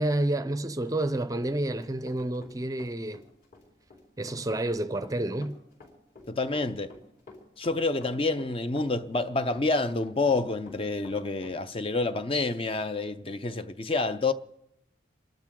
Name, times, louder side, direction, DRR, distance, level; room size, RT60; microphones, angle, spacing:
voice 1, 0.0-3.2 4.2-5.6, right 1 dB, 20° right, 0.5 m, -29 dB
Run, 0.9-2.5 2.8-11.6, left 2 dB, 45° left, 4.7 m, -49 dB
voice 2, 6.3-6.9 7.6-14.3, left 3 dB, 30° left, 0.5 m, -28 dB
27.5 x 12.0 x 3.8 m
head